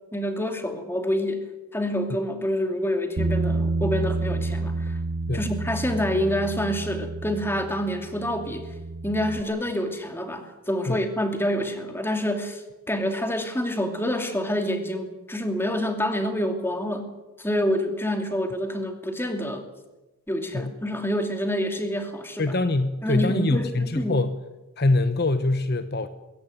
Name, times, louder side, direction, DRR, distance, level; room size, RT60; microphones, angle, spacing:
voice 1, 0.1-1.5 1.7-5.0 5.3-8.7 9.0-17.1 17.4-19.6 20.3-22.5 23.0-24.2, equal, 10° left, 6 dB, 2.5 m, -27 dB
Bass guitar, 3.2-9.4, right 2 dB, 75° right, 1.2 m, -29 dB
voice 2, 22.4-24.4 24.8-26.1, left 2 dB, 50° left, 10 dB, 1.0 m, -24 dB
21.0 x 17.0 x 9.3 m, 1.1 s
head